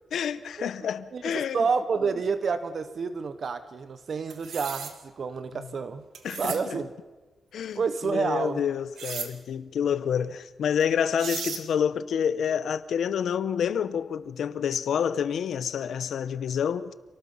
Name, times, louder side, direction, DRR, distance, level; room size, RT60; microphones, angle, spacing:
voice 1, 0.1-1.6 6.2-6.8 7.5-16.9, left 8 dB, 80° left, 0.9 m, -28 dB
voice 2, 1.1-6.0 6.4-6.9 7.7-8.6, right 5 dB, 50° right, 1.0 m, -29 dB
sound 1, 4.3-4.9 6.2-6.6 9.0-9.3 10.8-10.9 11.2-11.6, right 7 dB, 85° right, 2.0 m, -35 dB
28.5 x 19.0 x 5.6 m
wide cardioid pair, 145°, 0 cm